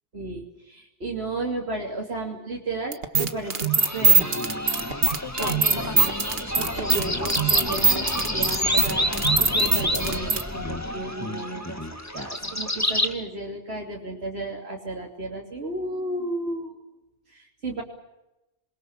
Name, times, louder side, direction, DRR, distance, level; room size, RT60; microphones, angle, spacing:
voice 1, 0.1-4.5 5.4-6.1 6.5-11.8 12.1-16.7 17.3-17.8, right 2 dB, 85° right, -3 dB, 3.3 m, -34 dB
sound 1, 2.9-10.4, right 4 dB, 70° right, 1.7 m, -21 dB
sound 2, 3.4-13.1, left 1 dB, 15° left, 2.0 m, -28 dB
28.0 x 22.0 x 7.3 m, 0.97 s
omnidirectional pair, 1.1 m